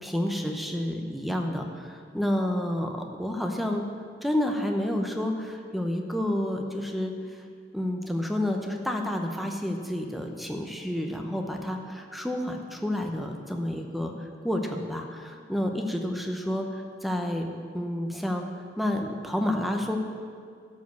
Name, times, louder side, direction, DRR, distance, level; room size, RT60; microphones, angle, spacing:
voice 1, 0.0-3.8 4.2-7.1 7.7-18.4 18.8-20.0, left 1 dB, ahead, 3 dB, 0.8 m, -30 dB
12.5 x 5.2 x 6.9 m, 2.2 s
head